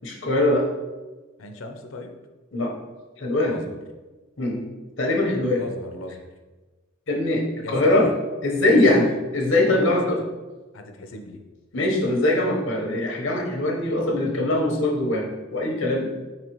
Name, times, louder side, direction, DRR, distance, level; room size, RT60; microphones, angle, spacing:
voice 1, 0.0-0.7 2.5-2.7 3.2-3.6 4.4-4.7 5.0-5.6 7.1-8.1 8.4-10.2 11.7-16.1, left 1 dB, 65° left, 0 dB, 1.0 m, -22 dB
voice 2, 1.4-2.1 3.4-3.8 5.5-6.3 7.6-8.1 8.7-9.2 9.8-10.1 10.7-11.4, left 2 dB, 80° left, 6 dB, 0.6 m, -37 dB
4.4 x 4.0 x 3.0 m, 1.2 s
head